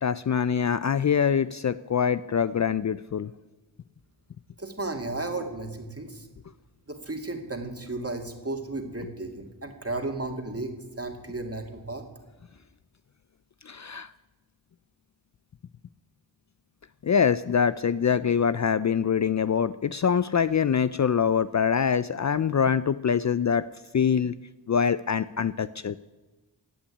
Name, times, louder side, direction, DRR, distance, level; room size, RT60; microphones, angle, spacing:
voice 1, 0.0-3.3 13.7-14.1 17.0-23.7 23.9-24.4 24.7-26.0, left 7 dB, 45° left, 15 dB, 0.4 m, -24 dB
voice 2, 4.6-6.3 6.9-10.7 11.0-12.0, right 2 dB, 35° right, 4 dB, 2.2 m, -34 dB
16.5 x 6.1 x 9.8 m, 1.2 s
cardioid pair, 45°, 42 cm